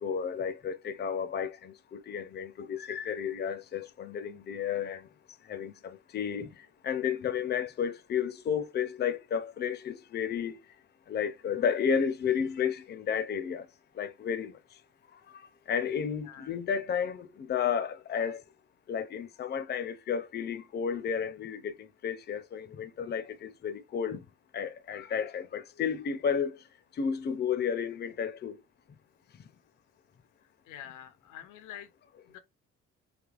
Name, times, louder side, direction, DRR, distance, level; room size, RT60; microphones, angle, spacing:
voice 1, 0.0-5.1 5.5-10.6 11.1-13.7 14.0-14.5 15.7-18.4 18.9-24.2 24.5-26.6 26.9-28.6, left 7 dB, 35° left, 0.5 m, -32 dB
voice 2, 16.3-16.6 30.6-31.9 32.3-32.4, left 10 dB, 90° left, 0.6 m, -46 dB
3.3 x 2.8 x 2.4 m
cardioid pair, 90°, 30 cm